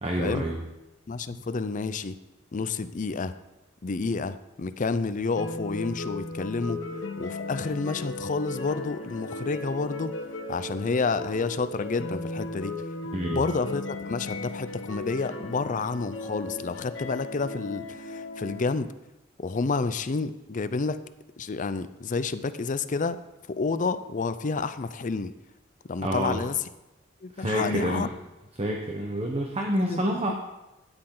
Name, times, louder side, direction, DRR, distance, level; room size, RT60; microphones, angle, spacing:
voice 1, 0.0-0.6 1.3-1.4 13.1-13.4 26.0-26.4 27.3-28.1 28.6-30.3, right 1 dB, 30° right, 1 dB, 1.0 m, -28 dB
voice 2, 1.1-2.2 2.5-3.4 3.8-6.8 7.2-10.1 10.5-12.7 13.3-18.9 19.4-21.0 21.4-23.2 23.5-25.3 25.9-26.6 27.2-28.1 29.7-30.1, left 4 dB, 40° left, 13 dB, 0.5 m, -29 dB
sound 1, 5.4-18.6, left 2 dB, 65° left, 1.1 m, -36 dB
13.0 x 9.7 x 3.9 m, 0.98 s
head